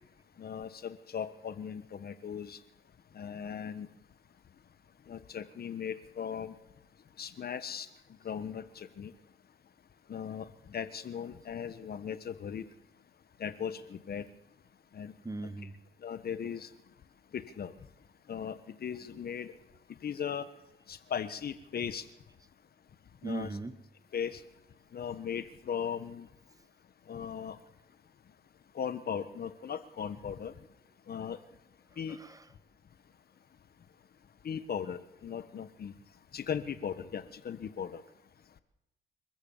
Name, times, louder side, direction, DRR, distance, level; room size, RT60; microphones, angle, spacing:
voice 1, 0.4-2.6 3.1-3.9 5.1-6.5 7.2-7.9 8.2-9.1 10.1-12.6 13.4-14.2 14.9-15.1 16.0-16.7 17.3-17.7 18.3-19.5 20.0-20.4 20.9-22.0 23.2-23.5 24.1-24.4 24.9-26.3 27.1-27.6 28.7-30.5 31.1-31.4 32.0-32.2 34.4-35.9 36.3-38.0, left 7 dB, 50° left, 12 dB, 1.4 m, -38 dB
voice 2, 15.2-15.8 23.2-23.8 32.1-32.5, right 3 dB, 15° right, 11 dB, 1.4 m, -38 dB
29.5 x 14.5 x 7.3 m, 0.90 s
cardioid pair, 90°, 20 cm